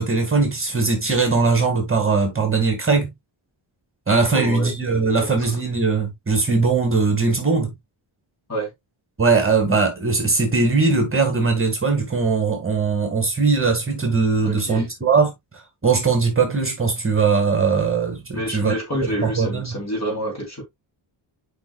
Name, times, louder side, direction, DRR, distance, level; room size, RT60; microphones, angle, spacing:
voice 1, 0.0-3.1 4.1-7.7 9.2-15.3 15.8-18.7 19.2-19.7, right 4 dB, 25° right, 2.1 m, -20 dB
voice 2, 4.3-4.7 5.0-5.3 8.5-8.7 14.4-14.9 18.3-20.6, equal, 30° left, 4.0 m, -28 dB
8.2 x 5.3 x 2.4 m
wide cardioid pair, 130°, 49 cm